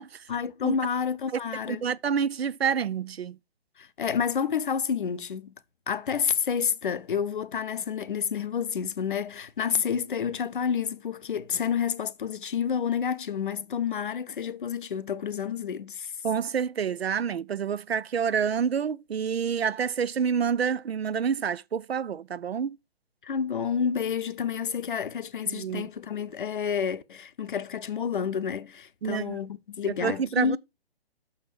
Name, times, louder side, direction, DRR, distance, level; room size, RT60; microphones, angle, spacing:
voice 1, 0.3-1.8 3.8-5.5 5.9-16.1 23.2-30.6, left 7 dB, 55° left, 0.7 m, -29 dB
voice 2, 1.7-3.4 16.2-22.8 25.5-25.9 29.0-29.4 30.0-30.6, right 7 dB, 75° right, 0.5 m, -28 dB
6.2 x 5.7 x 4.9 m
figure-of-eight pair, 140°, 31 cm